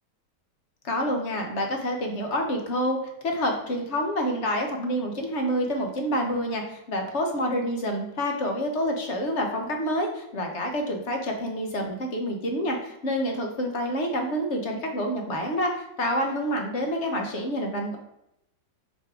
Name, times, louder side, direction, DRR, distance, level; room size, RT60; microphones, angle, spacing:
voice 1, 0.8-18.0, equal, 45° left, 3 dB, 1.2 m, -28 dB
5.1 x 4.7 x 4.8 m, 0.81 s
omnidirectional pair, 1.9 m